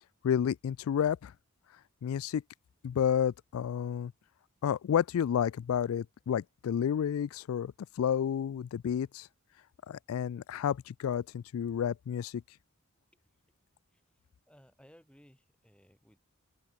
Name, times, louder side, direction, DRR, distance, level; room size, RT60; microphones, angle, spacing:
voice 1, 0.2-1.3 2.0-2.4 2.8-4.1 4.6-9.3 9.9-12.4, left 8 dB, 75° left, 0.3 m, -30 dB
voice 2, 14.5-16.2, equal, 5° left, 3.2 m, -60 dB
open air
head